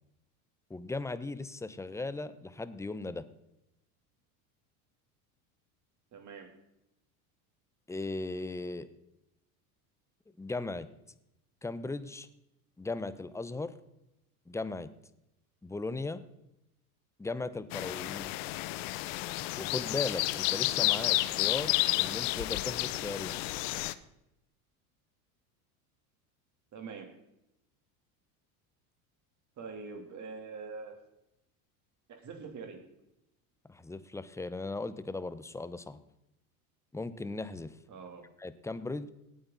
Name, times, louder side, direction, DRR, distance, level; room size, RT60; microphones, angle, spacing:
voice 1, 0.7-3.2 7.9-8.9 10.4-10.9 11.6-12.3 12.8-13.7 14.5-14.9 15.6-16.2 17.2-18.3 19.6-23.4 33.7-36.0 36.9-37.7 38.4-39.1, left 3 dB, 5° left, 14 dB, 0.8 m, -37 dB
voice 2, 6.1-6.5 26.7-27.1 29.6-30.9 32.1-32.8 37.9-38.3, right 4 dB, 40° right, 4 dB, 3.3 m, -44 dB
sound 1, 17.7-23.9, left 18 dB, 65° left, 0.8 m, -31 dB
18.0 x 8.8 x 4.0 m, 0.87 s
supercardioid pair, 100°, 44 cm